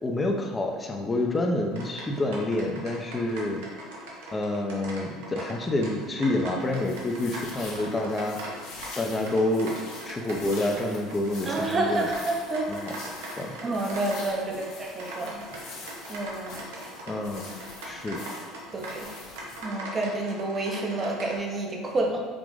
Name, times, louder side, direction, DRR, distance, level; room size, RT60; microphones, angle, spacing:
voice 1, 0.0-3.7 4.3-8.4 9.0-9.8 10.1-12.1 12.7-12.9 13.4-13.6 14.6-14.7 17.1-17.5 17.8-18.2, left 1 dB, 20° left, 2 dB, 0.7 m, -28 dB
sound 1, 1.7-21.4, right 1 dB, 80° right, 0.8 m, -41 dB
sound 2, 6.6-19.6, left 3 dB, 70° left, 1.1 m, -44 dB
voice 2, 11.5-12.7 13.6-15.4 16.1-16.6 18.7-19.1 19.6-22.2, right 2 dB, 30° right, 0 dB, 0.9 m, -29 dB
5.0 x 2.5 x 3.7 m, 1.4 s
hypercardioid pair, 85°, 0 cm